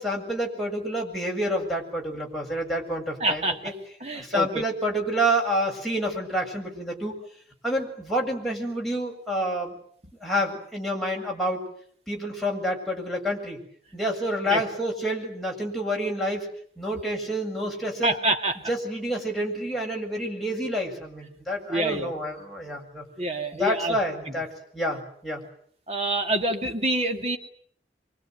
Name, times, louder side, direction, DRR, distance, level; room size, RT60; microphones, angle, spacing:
voice 1, 0.0-3.7 4.1-7.2 7.6-9.7 10.2-11.6 12.1-13.6 13.9-16.5 16.8-18.1 18.7-23.0 23.6-24.5 24.7-25.4, equal, ahead, -2 dB, 7.5 m, -28 dB
voice 2, 3.2-3.7 4.0-4.6 14.5-14.6 18.0-18.6 21.7-22.1 23.2-24.0 24.3-24.4 25.9-27.4, right 1 dB, 35° right, 5 dB, 2.5 m, -26 dB
25.0 x 25.0 x 9.4 m, 0.62 s
head